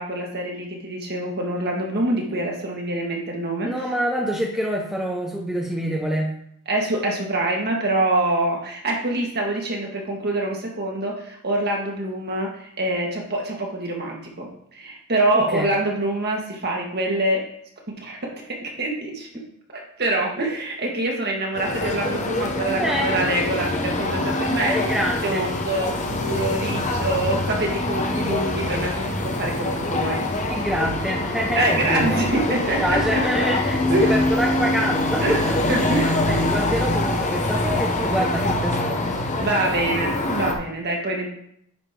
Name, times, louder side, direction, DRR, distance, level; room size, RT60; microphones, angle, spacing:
voice 1, 0.0-3.7 6.7-17.5 18.0-19.3 19.7-24.8 25.2-30.2 31.6-33.4 33.9-34.2 35.2-35.4 35.7-36.5 39.4-41.3, right 2 dB, 50° right, -1 dB, 1.9 m, -25 dB
voice 2, 3.6-6.3 15.3-15.7 22.8-23.2 24.7-25.4 30.5-32.2 32.7-35.8 36.2-39.2, equal, ahead, -1 dB, 0.8 m, -26 dB
sound 1, 21.5-40.5, left 2 dB, 35° left, 1.0 m, -24 dB
9.9 x 5.3 x 3.8 m, 0.69 s
head